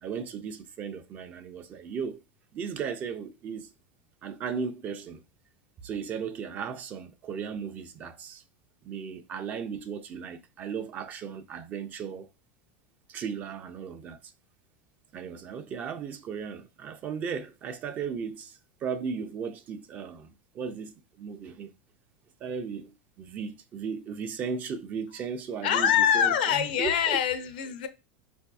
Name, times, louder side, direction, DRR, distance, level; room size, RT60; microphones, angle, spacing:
voice 1, 0.0-2.2 2.5-3.7 4.2-5.2 5.8-8.4 8.8-12.3 13.1-14.3 15.1-21.7 22.4-27.2, right 6 dB, 35° right, 0.4 m, -36 dB
voice 2, 25.6-27.9, left 8 dB, 80° left, 0.6 m, -24 dB
3.9 x 2.6 x 2.2 m
supercardioid pair, 135°, 5 cm